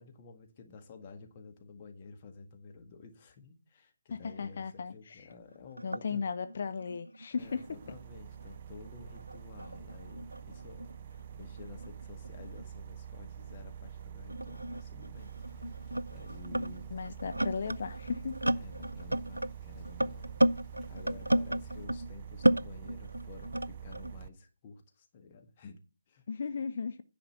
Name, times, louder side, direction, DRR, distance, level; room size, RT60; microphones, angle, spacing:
voice 1, 0.0-6.2 7.3-16.9 18.5-20.4 20.9-26.3, left 4 dB, 25° left, 1.7 m, -52 dB
voice 2, 4.1-5.3 5.8-7.8 16.9-18.3 26.3-27.0, left 5 dB, 40° left, 0.7 m, -36 dB
sound 1, 5.3-5.4 5.7-8.6 8.8-12.6 13.5-13.6 14.3-22.1 22.4-24.1, right 1 dB, 80° right, 0.6 m, -34 dB
sound 2, 7.4-24.3, right 8 dB, 30° right, 0.6 m, -46 dB
Rain, 15.2-21.8, left 3 dB, ahead, 2.8 m, -57 dB
10.0 x 5.1 x 7.3 m
figure-of-eight pair, 150°, 0 cm